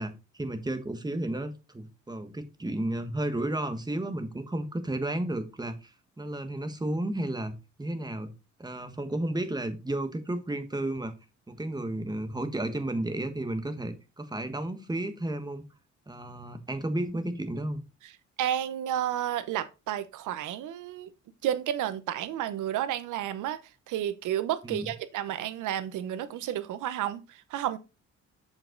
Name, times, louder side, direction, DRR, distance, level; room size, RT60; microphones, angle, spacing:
voice 1, 0.0-5.9 6.2-8.3 8.6-11.1 11.5-15.6 16.1-17.8 24.6-24.9, right 1 dB, 15° right, 1.5 m, -32 dB
voice 2, 18.4-21.1 21.4-23.6 23.9-27.8, right 11 dB, 85° right, 0.9 m, -31 dB
7.2 x 5.5 x 3.9 m
cardioid pair, 90°, 30 cm